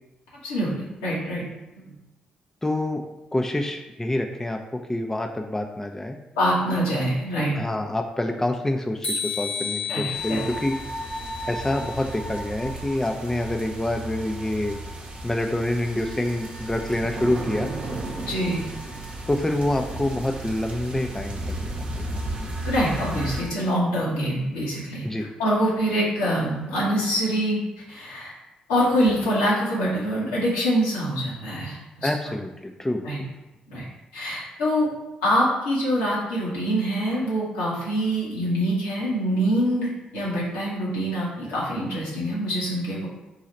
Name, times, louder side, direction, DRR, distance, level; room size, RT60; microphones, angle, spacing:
voice 1, 0.4-1.4 1.8-1.9 6.3-7.5 9.9-10.4 18.3-18.6 22.6-25.0 25.4-27.6 27.9-28.3 28.7-32.1 33.0-33.2 33.7-33.8 34.1-34.9 35.2-43.1, equal, 85° left, -7 dB, 1.2 m, -25 dB
voice 2, 2.6-3.0 3.3-6.2 7.5-10.8 11.4-14.8 15.2-17.7 19.3-22.4 25.0-25.3 32.0-33.3, left 1 dB, 15° left, 3 dB, 0.5 m, -27 dB
sound 1, 9.0-12.1, left 5 dB, 45° left, 1.0 m, -32 dB
sound 2, 10.1-23.4, right 1 dB, 40° right, 0.8 m, -34 dB
3.9 x 2.4 x 4.2 m, 0.98 s
hypercardioid pair, 45°, 3 cm